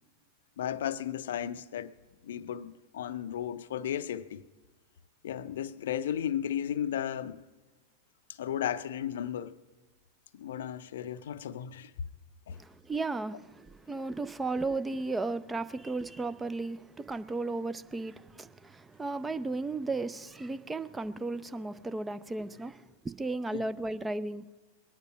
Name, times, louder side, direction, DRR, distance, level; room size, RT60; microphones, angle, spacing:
voice 1, 0.6-1.9 2.2-4.4 5.2-7.5 8.3-9.6 10.3-11.9 12.5-12.6 23.5-23.6, left 10 dB, 60° left, 0.5 m, -34 dB
voice 2, 12.5-24.4, right 3 dB, 10° right, 0.5 m, -35 dB
21.5 x 9.5 x 6.0 m
figure-of-eight pair, 90°, 0 cm